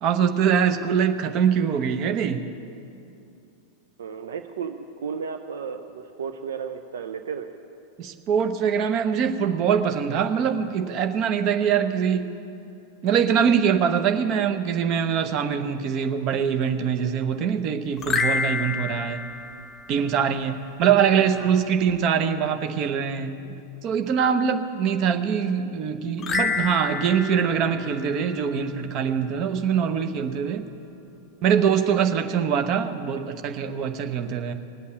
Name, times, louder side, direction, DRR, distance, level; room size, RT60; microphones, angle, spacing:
voice 1, 0.0-2.4 8.0-12.3 13.0-19.2 19.9-23.4 23.8-30.7 31.4-34.5, right 7 dB, 40° right, 8 dB, 0.9 m, -23 dB
voice 2, 4.0-7.5 21.1-21.5, right 6 dB, 60° right, 7 dB, 0.6 m, -34 dB
sound 1, 18.0-20.5 26.2-28.8, left 4 dB, 25° left, 0.7 m, -29 dB
19.0 x 8.4 x 8.9 m, 2.6 s
figure-of-eight pair, 90°, 0 cm